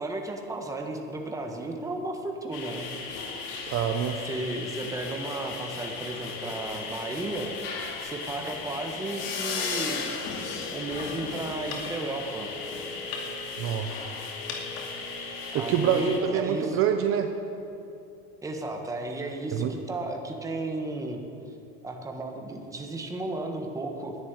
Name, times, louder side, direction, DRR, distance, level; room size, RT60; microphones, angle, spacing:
voice 1, 0.0-2.9 4.2-7.5 8.0-10.1 10.7-12.5 15.5-16.8 18.4-21.2 21.8-24.2, right 2 dB, 10° right, 2 dB, 1.4 m, -34 dB
sound 1, 2.5-16.2, left 4 dB, 80° left, 2.5 m, -35 dB
voice 2, 3.7-4.2 13.6-14.1 15.5-17.3 19.5-19.7, right 8 dB, 45° right, 6 dB, 0.9 m, -26 dB
11.5 x 9.9 x 9.0 m, 2.6 s
cardioid pair, 140°, 30 cm